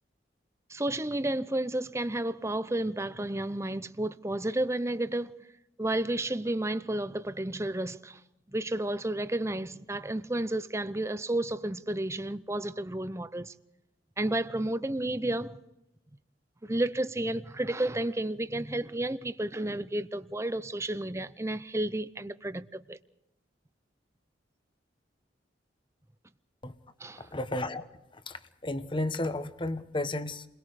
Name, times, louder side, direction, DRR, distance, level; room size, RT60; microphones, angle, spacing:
voice 1, 0.7-5.3 5.8-8.2 8.5-13.5 14.2-15.6 16.6-23.0 27.0-27.3, right 1 dB, 15° right, 0.7 m, -31 dB
voice 2, 27.2-27.9 28.3-30.5, left 2 dB, 25° left, 1.1 m, -33 dB
30.0 x 22.0 x 5.0 m
head